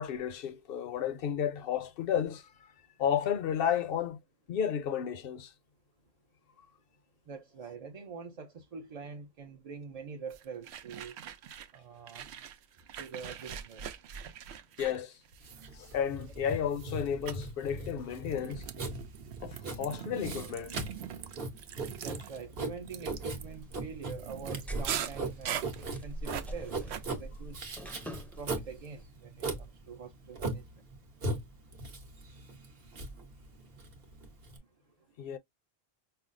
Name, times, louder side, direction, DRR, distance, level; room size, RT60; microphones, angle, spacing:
voice 1, 0.0-2.7 3.0-4.2 4.5-5.5 14.8-15.2 15.7-18.7 19.4-20.8 35.2-35.4, left 8 dB, 65° left, 0.7 m, -32 dB
voice 2, 7.3-11.1 11.7-12.3 13.0-13.8 22.0-27.6 28.4-30.6, right 5 dB, 45° right, 0.6 m, -45 dB
sound 1, 10.3-11.8 12.1-16.3 16.7-17.0 17.3-17.5 18.1-27.0, right 9 dB, 90° right, 0.9 m, -42 dB
Writing, 15.4-34.6, right 2 dB, 65° right, 1.2 m, -39 dB
sound 2, 23.3-29.1, right 1 dB, ahead, 0.4 m, -44 dB
5.6 x 2.0 x 2.4 m
omnidirectional pair, 1.1 m